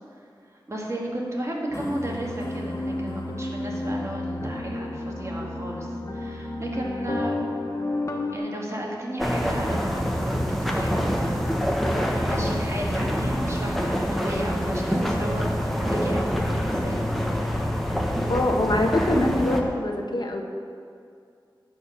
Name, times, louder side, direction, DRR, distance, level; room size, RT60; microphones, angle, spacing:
voice 1, 0.7-5.9 6.1-7.6 8.3-11.6 11.8-17.0, right 1 dB, 35° right, -2 dB, 2.1 m, -33 dB
sound 1, 1.7-8.4, left 2 dB, 40° left, 1.2 m, -31 dB
sound 2, 9.2-19.6, equal, ahead, 1.3 m, -26 dB
voice 2, 18.3-20.4, left 1 dB, 60° left, 2 dB, 1.1 m, -24 dB
12.0 x 4.8 x 7.4 m, 2.4 s
wide cardioid pair, 55°, 8 cm